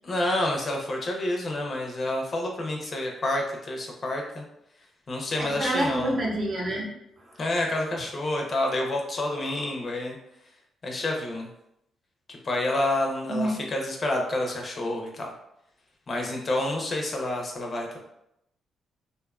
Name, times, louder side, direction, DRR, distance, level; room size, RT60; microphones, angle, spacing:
voice 1, 0.0-4.4 5.1-6.1 7.4-10.2 10.8-11.5 12.3-15.3 16.1-18.0, left 1 dB, 45° left, 1 dB, 0.6 m, -28 dB
voice 2, 5.4-7.4 13.3-13.6, right 1 dB, 55° right, -2 dB, 0.8 m, -28 dB
2.6 x 2.4 x 2.3 m, 0.80 s
supercardioid pair, 65°, 0 cm